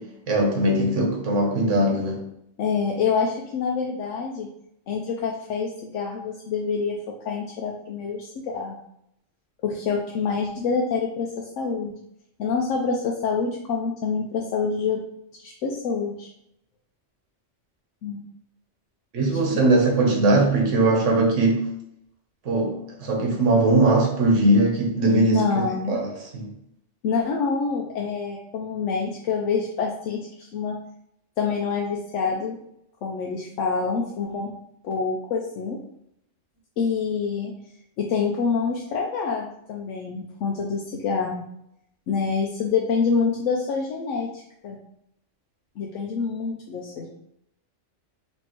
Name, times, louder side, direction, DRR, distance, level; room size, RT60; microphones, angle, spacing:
voice 1, 0.3-2.2 19.1-21.6 22.4-26.5, right 2 dB, 80° right, 1 dB, 1.3 m, -20 dB
voice 2, 2.6-4.5 4.9-7.0 7.2-8.8 9.6-12.0 12.4-15.0 15.4-16.3 18.0-18.2 19.5-19.6 25.3-26.0 27.0-30.8 31.4-32.6 33.0-34.5 34.8-35.8 36.8-37.5 38.0-41.4 42.1-44.8 45.8-47.1, left 5 dB, 90° left, 0 dB, 0.9 m, -26 dB
4.3 x 3.0 x 2.9 m, 0.74 s
omnidirectional pair, 1.2 m